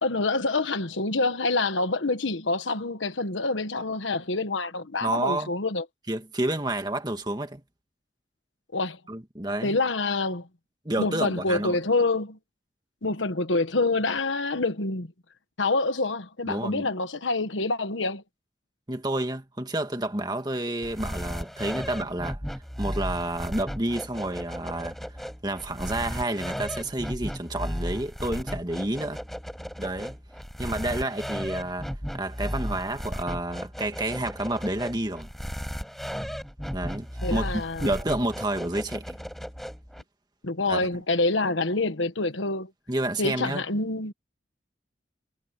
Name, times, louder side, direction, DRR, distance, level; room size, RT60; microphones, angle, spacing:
voice 1, 0.0-5.8 8.7-9.0 9.6-10.5 11.0-12.4 13.0-15.1 15.6-18.2 37.2-37.9 40.4-42.7 43.2-44.1, left 3 dB, 90° left, 1.4 m, -26 dB
voice 2, 5.0-5.5 6.1-7.6 9.1-9.8 10.9-11.8 16.5-16.9 18.9-22.4 22.8-29.2 29.8-30.2 30.6-31.9 32.1-35.3 36.7-39.2 40.7-40.8 42.9-43.6, right 1 dB, 20° right, 1.8 m, -30 dB
sound 1, 20.8-40.0, equal, ahead, 5.3 m, -35 dB
head